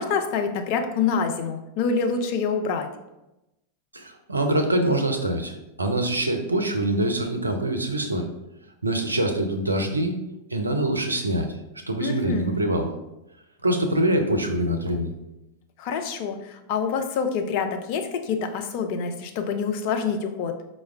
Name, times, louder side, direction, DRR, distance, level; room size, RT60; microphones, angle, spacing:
voice 1, 0.0-2.9 12.0-12.6 15.8-20.5, left 5 dB, 45° left, 5 dB, 0.4 m, -26 dB
voice 2, 3.9-8.3 8.8-10.1 10.5-11.5 11.9-12.9 13.6-15.1, right 1 dB, 80° right, 4 dB, 0.4 m, -24 dB
4.6 x 2.1 x 3.3 m, 0.94 s
figure-of-eight pair, 90°, 0 cm